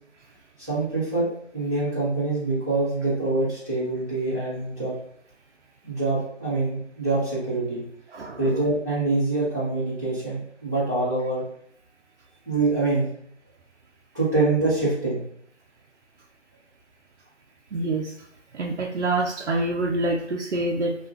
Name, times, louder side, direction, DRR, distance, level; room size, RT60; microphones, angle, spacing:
voice 1, 0.6-4.9 5.8-7.8 8.4-11.4 12.5-13.1 14.1-15.2, right 2 dB, 15° right, -12 dB, 0.8 m, -25 dB
voice 2, 8.1-8.6 17.7-18.1 18.5-21.0, right 2 dB, 70° right, 0 dB, 0.5 m, -26 dB
2.4 x 2.3 x 3.2 m, 0.64 s
figure-of-eight pair, 165°, 36 cm